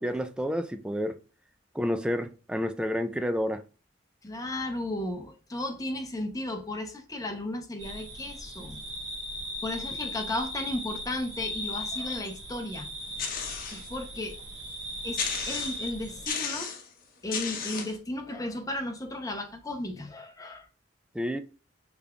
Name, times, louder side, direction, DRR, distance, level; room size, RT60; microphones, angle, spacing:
voice 1, 0.0-1.2 1.7-3.6 21.1-21.4, equal, 5° right, 0.3 m, -29 dB
voice 2, 4.2-8.8 9.6-12.9 13.7-14.4 15.0-16.7 17.2-20.7, left 1 dB, 20° left, 0.7 m, -34 dB
sound 1, 7.8-16.3, left 1 dB, 70° right, 1.9 m, -38 dB
sound 2, 13.2-13.9 14.4-14.5 15.2-15.9 16.3-16.9 17.3-18.0, left 6 dB, 50° left, 0.8 m, -33 dB
5.5 x 3.4 x 2.3 m
head